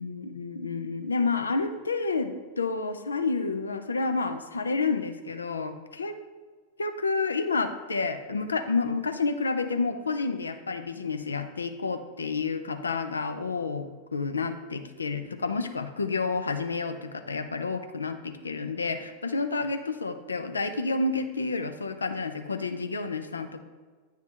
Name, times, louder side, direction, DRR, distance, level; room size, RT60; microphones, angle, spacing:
voice 1, 0.0-6.2 6.8-23.6, left 4 dB, 75° left, 8 dB, 0.5 m, -30 dB
8.8 x 3.4 x 4.3 m, 1.4 s
figure-of-eight pair, 90°, 0 cm